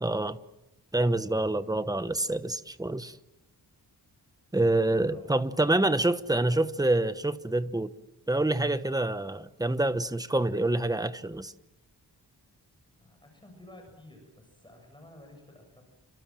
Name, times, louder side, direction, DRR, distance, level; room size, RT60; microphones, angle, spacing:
voice 1, 0.0-0.4 0.9-3.2 4.5-7.9 8.3-11.5, right 2 dB, 10° right, 1.1 m, -27 dB
voice 2, 4.5-5.3 12.9-15.8, left 1 dB, 10° left, 7.6 m, -52 dB
30.0 x 26.0 x 7.6 m
wide cardioid pair, 145°, 39 cm